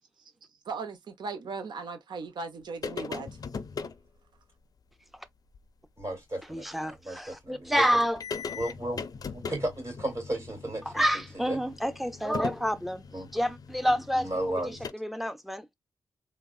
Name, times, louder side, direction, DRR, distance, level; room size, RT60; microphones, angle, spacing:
voice 1, 0.7-3.3, right 4 dB, 75° right, 0.6 m, -37 dB
sound 1, 2.8-4.0 5.5-5.6 6.0-6.1 7.7-7.8 8.0-14.9, left 5 dB, 55° left, 0.4 m, -39 dB
voice 2, 6.0-8.0 8.5-9.0 9.3-11.0 11.3-11.6 13.1-13.3 13.9-14.9, right 1 dB, 40° right, 2.4 m, -34 dB
voice 3, 6.5-8.2 10.9-13.0 13.3-14.3 14.9-15.7, equal, ahead, 0.5 m, -28 dB
3.4 x 2.0 x 2.3 m
cardioid pair, 65°, 8 cm